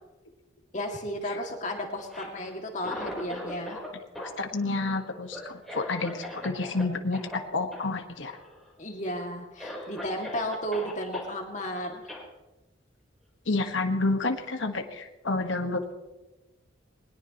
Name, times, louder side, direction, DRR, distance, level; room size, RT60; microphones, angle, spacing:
voice 1, 0.7-3.8 8.8-12.1, equal, 40° left, 1 dB, 2.4 m, -33 dB
Cough, 2.0-3.9 4.1-6.8 7.1-7.4 7.7-7.9 8.2-8.7 9.2-9.3 9.6-11.3 12.1-12.2, left 1 dB, ahead, 4.2 m, -40 dB
voice 2, 4.2-8.4 13.5-15.9, left 3 dB, 85° left, 5 dB, 1.5 m, -29 dB
21.5 x 20.5 x 3.1 m, 1.0 s
head